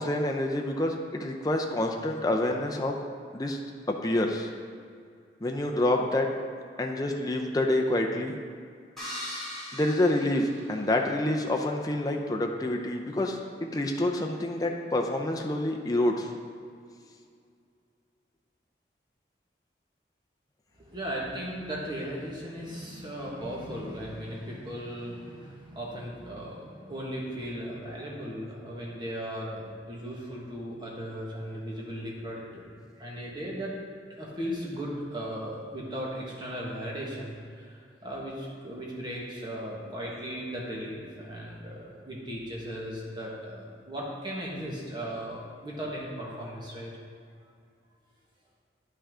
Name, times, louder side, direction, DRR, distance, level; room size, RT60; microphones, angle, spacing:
voice 1, 0.0-3.0 3.3-3.6 3.9-4.5 5.4-6.3 6.8-8.4 9.7-16.3, left 1 dB, 20° left, 1 dB, 0.5 m, -27 dB
sound 1, 9.0-11.2, left 1 dB, ahead, 1.6 m, -40 dB
voice 2, 20.8-32.6 33.0-33.8 34.2-46.9, equal, 25° right, -4 dB, 1.5 m, -37 dB
10.0 x 5.6 x 3.7 m, 2.3 s
head